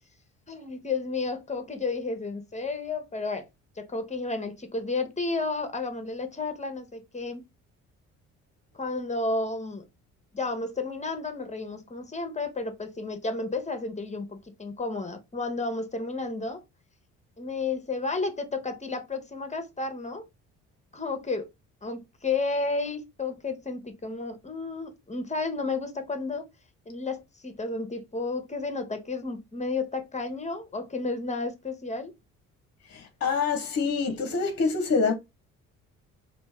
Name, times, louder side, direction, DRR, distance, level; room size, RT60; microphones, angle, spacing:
voice 1, 0.5-3.5 3.8-7.4 8.7-9.8 10.3-16.6 17.4-20.3 20.9-21.5 21.8-26.5 26.9-32.1, left 3 dB, 20° left, 1.1 m, -32 dB
voice 2, 32.9-35.1, left 4 dB, 40° left, 0.9 m, -26 dB
3.3 x 2.8 x 3.3 m
hypercardioid pair, 50°, 38 cm